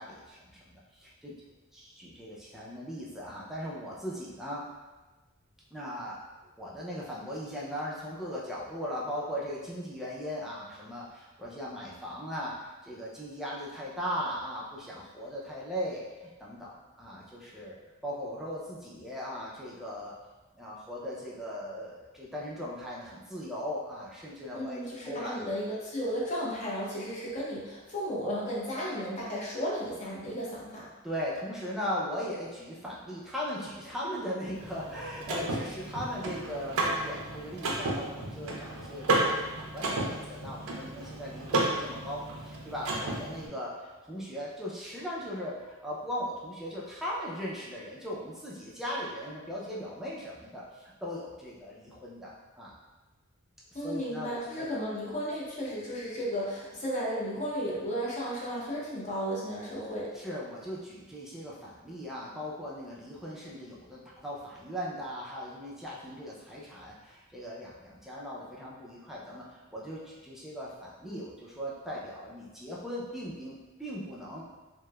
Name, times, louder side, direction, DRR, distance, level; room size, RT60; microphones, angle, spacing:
voice 1, 0.0-1.3 1.7-4.6 5.7-6.2 6.6-17.8 18.0-20.1 20.5-25.4 31.0-52.7 53.8-54.7 60.1-74.5, equal, ahead, -6 dB, 0.4 m, -38 dB
voice 2, 24.5-30.9 53.7-60.1, equal, 35° left, -6 dB, 0.6 m, -34 dB
Car / Mechanisms, 34.5-43.5, right 2 dB, 70° right, 0.5 m, -32 dB
3.0 x 2.0 x 2.2 m, 1.2 s
head